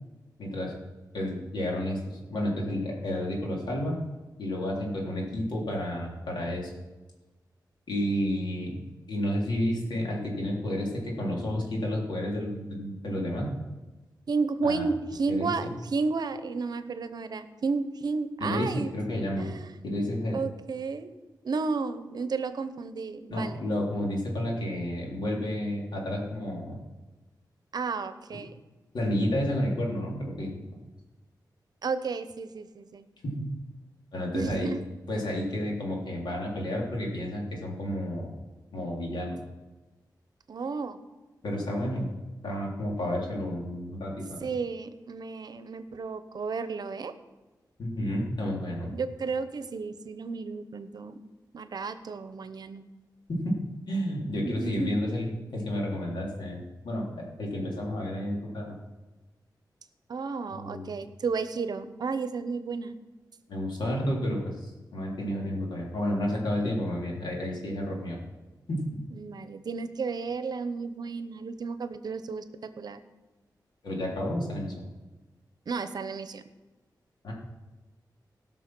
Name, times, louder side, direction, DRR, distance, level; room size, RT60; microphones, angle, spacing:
voice 1, 0.4-0.7 1.1-3.9 4.4-6.7 7.9-8.8 9.1-13.5 14.6-14.8 15.3-15.7 18.4-19.5 19.8-20.4 23.3-26.8 28.9-30.6 33.2-33.5 34.1-34.7 35.1-38.3 38.7-39.4 41.4-42.1 42.4-44.4 47.8-48.9 53.3-53.6 53.9-58.8 60.5-61.0 63.5-68.2 68.7-68.9 73.8-74.8 77.2-77.3, left 1 dB, 80° left, -2 dB, 3.3 m, -31 dB
voice 2, 14.3-18.9 19.4-19.7 20.3-21.1 21.4-23.6 27.7-28.5 31.8-33.1 34.3-34.8 40.5-41.0 44.4-47.1 48.9-51.1 51.5-52.9 54.5-55.2 60.1-63.0 69.1-73.0 75.7-76.4, right 4 dB, 65° right, 11 dB, 0.8 m, -32 dB
17.0 x 6.1 x 6.1 m, 1.2 s
wide cardioid pair, 120°, 7 cm